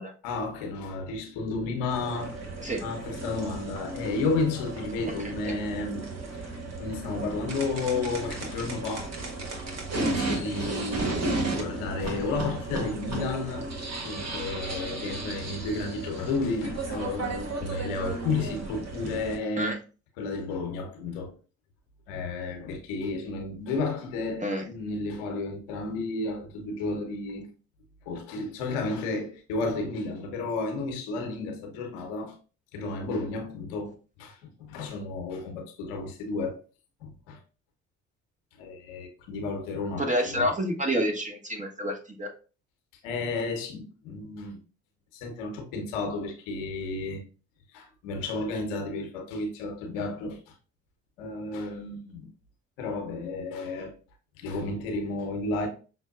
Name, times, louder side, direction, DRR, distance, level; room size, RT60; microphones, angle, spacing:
voice 1, 0.2-2.5 2.8-6.4 6.8-9.1 9.9-13.7 14.0-19.8 20.2-21.3 22.1-27.5 28.1-32.4 32.7-33.9 34.2-36.6 37.0-37.4 38.5-40.5 43.0-44.6 45.1-47.2 47.7-50.5 51.2-52.3 52.8-53.9 54.4-55.7, left 3 dB, 80° left, 0.9 m, -32 dB
Caçadors de sons - Foto en el museu, 1.9-19.4, right 2 dB, 45° right, 1.3 m, -34 dB
voice 2, 5.2-5.6 19.6-19.8 24.4-24.6 40.0-42.3, equal, 20° right, 1.2 m, -28 dB
5.9 x 2.1 x 2.4 m
hypercardioid pair, 50°, 37 cm